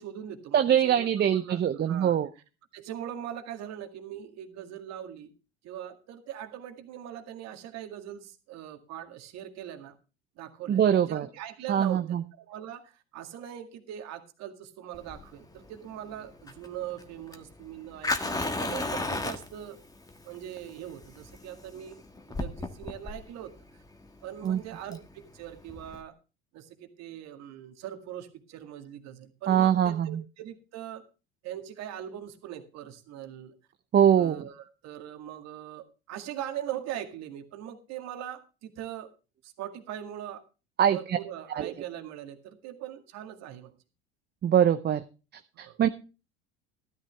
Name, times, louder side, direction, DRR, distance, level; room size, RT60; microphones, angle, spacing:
voice 1, 0.0-2.2 2.7-5.3 5.6-9.9 10.4-10.8 11.1-19.8 20.2-23.5 24.2-26.1 26.5-31.0 31.4-33.6 34.2-39.1 39.4-40.4 40.9-43.7 45.5-45.8, right 11 dB, 55° right, 6 dB, 2.1 m, -41 dB
voice 2, 0.5-2.3 10.7-11.3 11.7-12.2 24.4-24.6 29.5-30.2 33.9-34.4 40.8-41.2 41.5-41.7 44.4-45.0 45.6-45.9, right 9 dB, 35° right, 10 dB, 0.8 m, -23 dB
Fire, 14.9-26.0, left 2 dB, 10° left, 1.5 m, -36 dB
13.0 x 12.0 x 3.5 m, 0.32 s
hypercardioid pair, 70°, 31 cm